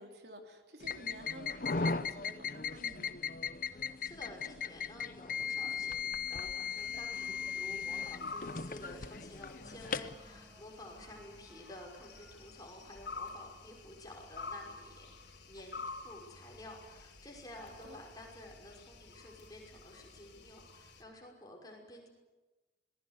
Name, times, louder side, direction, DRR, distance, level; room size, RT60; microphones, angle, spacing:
voice 1, 0.0-3.2 17.8-18.0, right 1 dB, 70° right, 3 dB, 3.5 m, -51 dB
sound 1, 0.8-10.1, left 5 dB, 50° left, 0.8 m, -38 dB
voice 2, 3.7-22.1, left 1 dB, 20° left, 0 dB, 5.6 m, -52 dB
sound 2, 6.8-21.0, left 4 dB, 80° left, 3.8 m, -50 dB
sound 3, 9.6-15.0, equal, 15° right, 3.1 m, -62 dB
26.0 x 20.0 x 8.2 m, 1.1 s
head